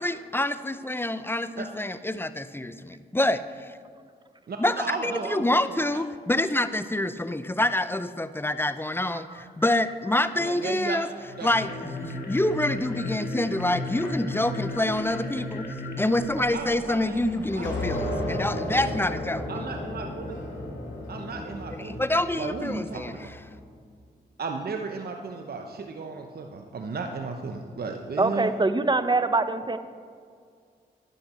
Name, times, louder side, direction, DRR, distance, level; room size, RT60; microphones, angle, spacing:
voice 1, 0.0-3.7 4.6-11.1 11.4-15.7 16.0-19.5 21.8-23.2, left 1 dB, 10° left, 13 dB, 0.6 m, -27 dB
voice 2, 4.5-6.0 10.4-11.0 11.4-11.5 16.5-17.3 17.6-17.7 19.5-20.4 21.1-23.0 24.4-28.5, right 4 dB, 55° right, 4 dB, 0.9 m, -35 dB
sound 1, 11.2-17.4, left 2 dB, 60° left, 2.1 m, -35 dB
sound 2, 17.1-23.5, left 1 dB, 80° left, 2.2 m, -33 dB
voice 3, 28.2-29.8, right 3 dB, 25° right, 11 dB, 0.8 m, -23 dB
12.0 x 9.9 x 4.3 m, 2.1 s
supercardioid pair, 50°, 19 cm